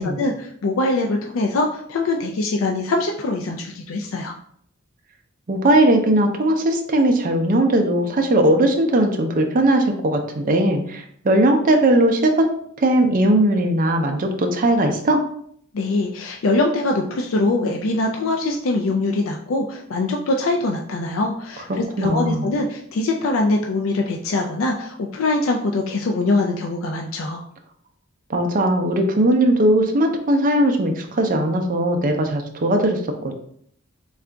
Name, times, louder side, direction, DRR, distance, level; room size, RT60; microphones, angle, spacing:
voice 1, 0.0-4.3 15.7-27.4, left 2 dB, 70° left, 1 dB, 0.4 m, -23 dB
voice 2, 5.5-12.5 12.8-15.2 21.7-22.5 28.3-33.3, right 1 dB, 40° right, 4 dB, 0.5 m, -19 dB
3.8 x 2.4 x 3.3 m, 0.64 s
head